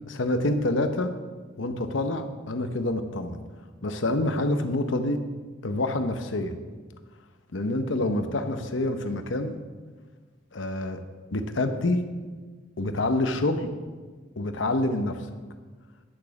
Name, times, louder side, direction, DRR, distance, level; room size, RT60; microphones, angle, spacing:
voice 1, 0.1-1.1 1.6-3.4 3.8-5.2 5.6-6.5 7.5-9.5 10.5-11.0 11.3-12.0 12.8-13.7 14.4-15.3, left 2 dB, 85° left, 8 dB, 0.9 m, -27 dB
11.5 x 6.4 x 7.1 m, 1.4 s
head